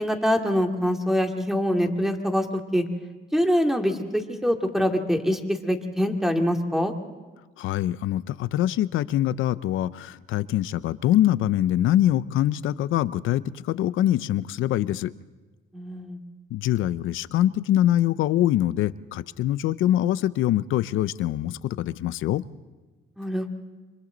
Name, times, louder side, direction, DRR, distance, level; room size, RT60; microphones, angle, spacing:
voice 1, 0.0-2.5 2.7-2.8 3.3-6.9 15.7-16.2 23.2-23.5, equal, ahead, 3 dB, 2.4 m, -24 dB
voice 2, 7.6-15.1 16.5-22.4, left 13 dB, 80° left, 16 dB, 0.6 m, -24 dB
29.0 x 25.5 x 4.0 m, 1.3 s
cardioid pair, 90°, 20 cm